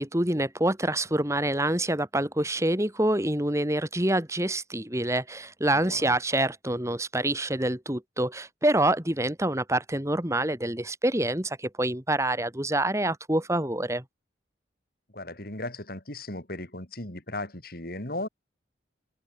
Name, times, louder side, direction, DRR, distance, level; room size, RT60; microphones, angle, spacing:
voice 1, 0.0-14.0, right 1 dB, 15° right, 2.8 m, -26 dB
voice 2, 5.7-6.1 15.1-18.3, left 2 dB, 50° left, 4.2 m, -36 dB
head